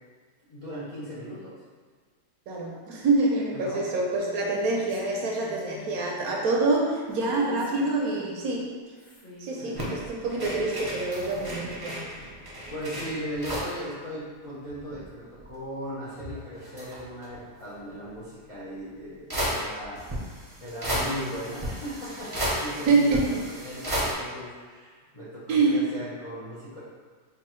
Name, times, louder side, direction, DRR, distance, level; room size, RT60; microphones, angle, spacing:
voice 1, 0.4-1.5 3.5-3.8 9.6-10.0 12.7-20.1 20.6-26.8, equal, 65° left, -9 dB, 0.3 m, -37 dB
voice 2, 2.5-8.7 9.4-12.0 22.9-23.3 25.5-25.8, right 3 dB, 70° right, -1 dB, 1.0 m, -26 dB
Female speech woman speaking, 4.1-6.1 7.1-8.5 8.9-9.9, left 2 dB, 40° left, 0.9 m, -47 dB
sound 1, 9.8-13.8 14.1-14.2 14.4-15.5 16.1-17.4 18.5-18.6 19.3-24.1, equal, 25° right, 0.5 m, -33 dB
5.3 x 2.3 x 3.0 m, 1.6 s
omnidirectional pair, 1.8 m